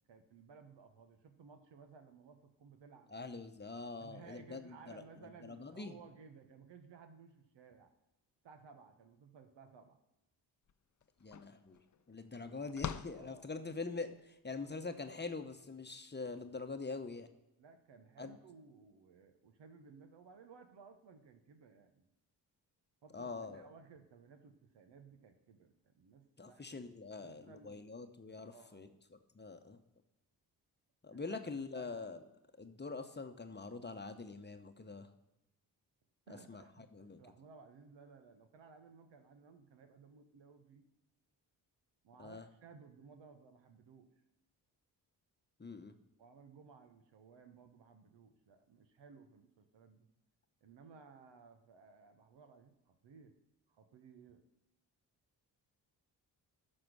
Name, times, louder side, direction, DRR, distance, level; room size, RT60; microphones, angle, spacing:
voice 1, 0.1-3.1 4.0-7.9 8.4-10.0 13.1-13.4 17.6-22.1 23.0-26.6 27.2-27.9 28.4-29.0 31.1-31.5 31.7-31.9 36.3-40.8 42.0-44.1 46.2-50.1 50.6-53.3 53.7-54.4, right 5 dB, 65° right, 6 dB, 1.2 m, -59 dB
voice 2, 3.1-6.0 11.2-11.8 12.1-17.3 18.2-18.3 23.1-23.7 26.4-28.9 29.3-29.8 31.0-32.2 32.6-35.1 36.3-36.6 36.9-37.2 42.2-42.5 45.6-45.9, left 3 dB, 20° left, 7 dB, 1.0 m, -44 dB
sound 1, 10.7-10.8 11.0-14.1, left 8 dB, 40° left, 0.7 m, -46 dB
12.5 x 4.4 x 6.2 m, 0.91 s
supercardioid pair, 45°, 46 cm